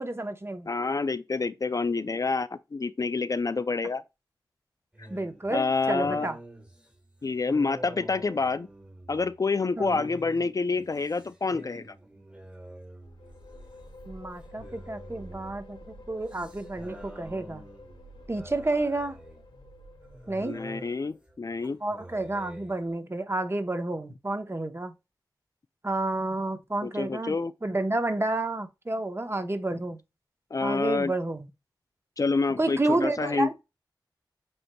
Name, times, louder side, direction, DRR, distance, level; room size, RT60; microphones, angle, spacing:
voice 1, 0.0-0.7 5.1-6.4 9.8-10.0 14.1-17.6 18.3-19.2 20.3-20.6 21.8-24.9 25.8-27.4 27.6-30.0 30.6-31.5 32.6-33.6, right 2 dB, 30° right, 0.8 m, -30 dB
voice 2, 0.7-4.0 5.5-6.3 7.2-8.7 9.1-11.9 20.4-21.8 26.8-27.5 30.5-31.1 32.2-33.5, left 4 dB, 45° left, 0.3 m, -28 dB
sound 1, 4.9-14.1 14.4-23.0, right 1 dB, 15° right, 1.4 m, -47 dB
sound 2, 13.0-20.9, left 1 dB, 80° left, 1.0 m, -49 dB
7.7 x 2.9 x 2.2 m
cardioid pair, 45°, 8 cm